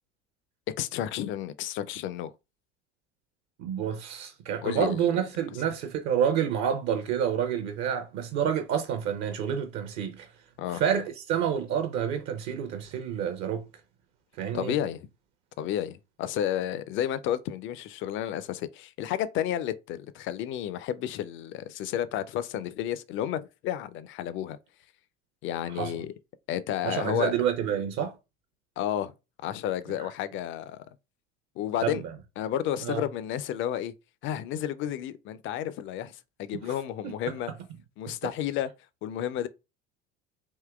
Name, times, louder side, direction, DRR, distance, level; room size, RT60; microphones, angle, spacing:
voice 1, 0.8-2.3 4.6-5.1 10.6-10.9 14.5-15.1 15.6-24.6 25.4-26.1 26.5-27.3 28.8-29.1 29.4-30.9 31.6-32.0 32.4-33.9 34.2-37.5 38.0-38.7 39.0-39.5, left 11 dB, 35° left, 0.4 m, -31 dB
voice 2, 3.6-10.3 10.7-13.7 14.4-14.8 25.7-25.9 26.8-28.2 31.8-32.0 32.8-33.0 37.0-37.1, right 8 dB, 50° right, 0.6 m, -28 dB
3.6 x 2.7 x 2.3 m
figure-of-eight pair, 65°, 35 cm